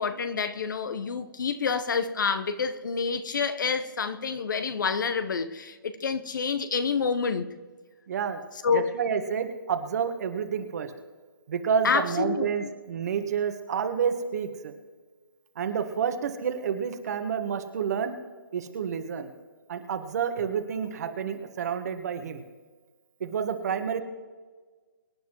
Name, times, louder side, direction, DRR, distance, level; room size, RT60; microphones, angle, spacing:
voice 1, 0.0-7.5 8.6-8.9 11.8-12.7, left 5 dB, 60° left, 1.0 m, -28 dB
voice 2, 8.1-8.4 8.7-10.9 11.5-14.7 15.5-18.2 18.5-19.3 19.7-22.4 23.2-24.0, right 7 dB, 45° right, 1.6 m, -29 dB
25.0 x 10.5 x 3.1 m
figure-of-eight pair, 140°, 12 cm